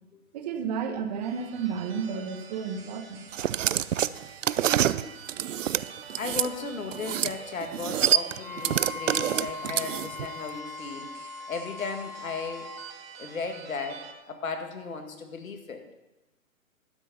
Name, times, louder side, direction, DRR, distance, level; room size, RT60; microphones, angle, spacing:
voice 1, 0.3-3.3 4.6-5.1, right 6 dB, 30° right, 7 dB, 1.1 m, -32 dB
sound 1, 1.2-14.1, right 6 dB, 45° right, 1.4 m, -47 dB
sound 2, 3.3-6.5 6.9-7.4 7.6-10.3, right 10 dB, 65° right, 0.5 m, -26 dB
voice 2, 6.2-11.1 11.5-12.7 13.2-15.8, left 4 dB, 70° left, 5 dB, 1.9 m, -36 dB
Wind instrument woodwind instrument, 8.4-12.9, left 4 dB, 35° left, 0.6 m, -40 dB
11.5 x 6.7 x 6.9 m, 1.0 s
figure-of-eight pair, 135°, 42 cm